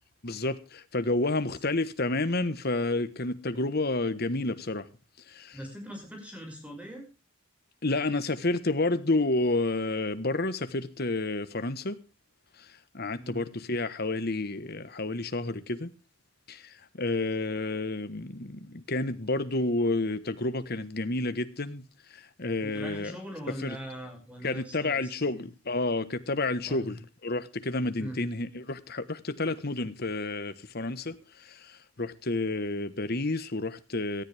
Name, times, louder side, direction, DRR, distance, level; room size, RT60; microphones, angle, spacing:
voice 1, 0.2-4.9 5.3-5.6 7.8-12.0 12.6-15.9 16.5-21.8 22.1-23.1 23.6-23.8 24.4-27.0 27.2-34.2, left 2 dB, 45° left, 1.4 m, -30 dB
voice 2, 5.5-7.0 13.2-13.4 22.6-25.5 26.6-27.0 28.0-28.2, equal, 5° right, 6.2 m, -41 dB
18.5 x 14.0 x 3.5 m
head